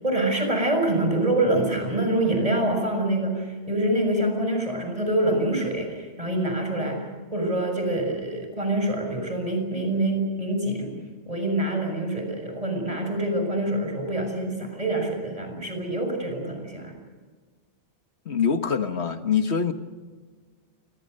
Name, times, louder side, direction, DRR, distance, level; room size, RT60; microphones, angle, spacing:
voice 1, 0.0-7.0 7.3-11.0 11.3-16.9, right 1 dB, 30° right, 6.8 m, -25 dB
voice 2, 18.2-19.7, left 6 dB, 75° left, 1.7 m, -24 dB
28.5 x 23.5 x 6.7 m
omnidirectional pair, 1.1 m